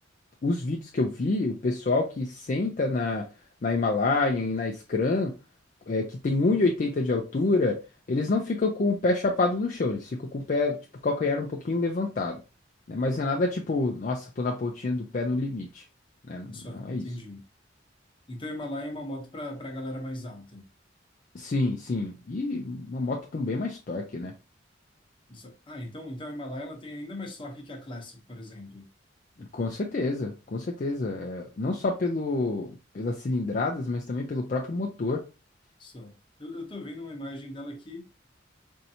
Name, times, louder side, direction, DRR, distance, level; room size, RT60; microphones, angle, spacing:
voice 1, 0.4-3.3 3.6-5.3 5.9-7.8 8.1-12.4 12.9-15.8 16.3-17.1 21.3-24.3 29.4-35.2, left 3 dB, 45° left, 0.4 m, -27 dB
voice 2, 16.5-17.4 18.3-20.6 25.3-28.8 35.8-36.1 36.4-38.0, left 1 dB, 25° left, 0.9 m, -38 dB
4.4 x 2.7 x 2.7 m
head